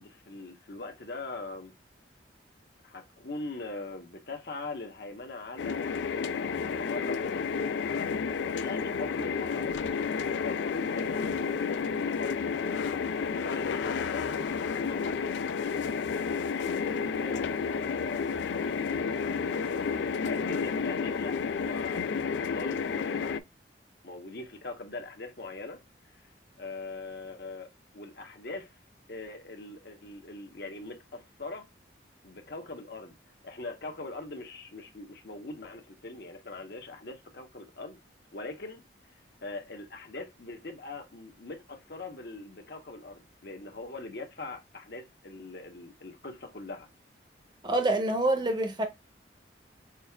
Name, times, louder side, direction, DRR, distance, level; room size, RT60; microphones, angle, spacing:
voice 1, 0.0-1.7 2.8-7.5 8.6-9.7 10.3-11.6 11.9-12.4 13.3-14.5 14.8-15.2 16.5-23.3 24.0-25.8 26.1-26.2 26.6-28.7 29.1-31.7 32.2-33.1 33.4-38.0 38.3-38.8 39.4-46.9, left 2 dB, 55° left, 1.0 m, -42 dB
sound 1, 5.6-23.4, left 5 dB, 75° left, 0.3 m, -31 dB
voice 2, 47.6-48.9, right 2 dB, 25° right, 0.7 m, -26 dB
6.1 x 2.4 x 2.2 m
head